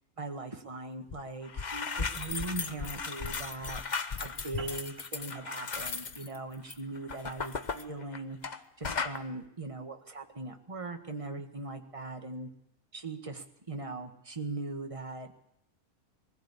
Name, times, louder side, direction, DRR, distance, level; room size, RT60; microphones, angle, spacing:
voice 1, 0.2-12.5 12.9-15.4, right 3 dB, 25° right, 5 dB, 1.7 m, -40 dB
sound 1, 1.1-1.2 1.4-8.6 8.8-9.2, left 5 dB, 35° left, 0.9 m, -36 dB
sound 2, 4.6-9.3, right 4 dB, 60° right, 3.1 m, -53 dB
20.5 x 15.5 x 8.5 m, 0.78 s
omnidirectional pair, 1.5 m